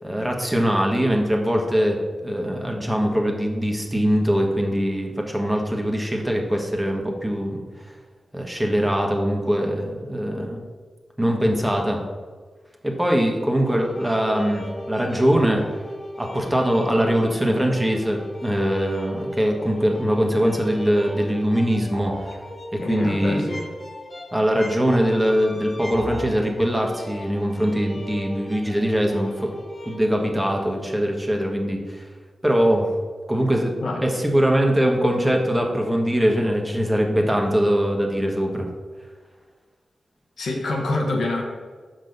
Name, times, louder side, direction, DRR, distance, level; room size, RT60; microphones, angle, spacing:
voice 1, 0.0-7.9 8.3-10.6 11.2-12.0 12.8-15.6 16.2-22.3 22.7-23.4 24.3-29.5 29.8-32.1 32.4-32.9 33.3-33.8 34.0-38.7, equal, 15° right, 1 dB, 1.5 m, -22 dB
sound 1, 13.6-30.0, left 1 dB, 40° left, 1.7 m, -37 dB
sound 2, 21.9-22.4 25.9-26.4, right 2 dB, 55° right, 1.4 m, -34 dB
voice 2, 22.8-23.6 33.8-34.0 40.4-41.4, left 2 dB, 80° left, 0 dB, 1.3 m, -26 dB
6.3 x 5.2 x 5.3 m, 1.5 s
cardioid pair, 45°, 0 cm